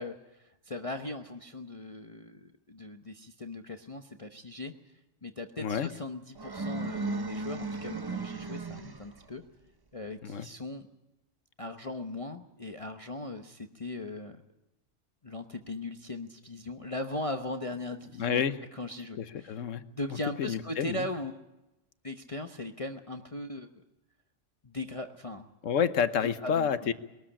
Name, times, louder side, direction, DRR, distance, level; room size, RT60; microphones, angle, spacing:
voice 1, 0.0-4.7 5.2-9.4 9.9-10.9 11.6-14.4 15.2-18.4 18.7-19.6 19.9-21.3 22.0-23.8 24.6-25.5 26.2-26.7, left 2 dB, 30° left, 5 dB, 0.9 m, -39 dB
voice 2, 5.6-5.9 10.2-10.5 18.2-18.6 19.2-19.8 20.4-21.1 25.6-26.9, left 7 dB, 80° left, 12 dB, 1.3 m, -29 dB
sound 1, 6.3-9.2, right 3 dB, 20° right, 0.7 m, -35 dB
22.0 x 13.5 x 10.0 m, 0.98 s
omnidirectional pair, 1.3 m